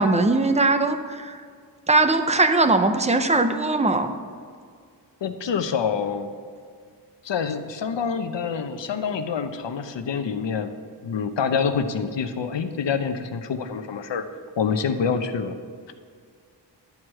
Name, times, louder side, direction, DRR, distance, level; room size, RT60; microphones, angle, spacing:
voice 1, 0.0-1.4 1.9-4.1, right 2 dB, 15° right, 7 dB, 0.5 m, -20 dB
voice 2, 5.2-6.3 7.2-10.7 11.0-14.2 14.6-15.6, left 6 dB, 80° left, 8 dB, 0.8 m, -26 dB
12.0 x 4.8 x 7.5 m, 2.1 s
wide cardioid pair, 175°, 43 cm